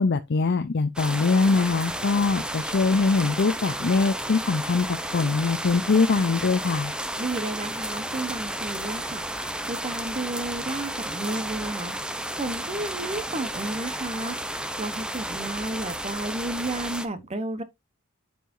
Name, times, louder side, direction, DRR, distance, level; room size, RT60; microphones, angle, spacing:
voice 1, 0.0-6.9, left 4 dB, 50° left, 0.5 m, -23 dB
sound 1, 1.0-17.1, right 1 dB, 5° right, 0.6 m, -32 dB
voice 2, 7.2-17.6, right 2 dB, 30° right, 0.9 m, -32 dB
10.0 x 4.7 x 2.6 m
head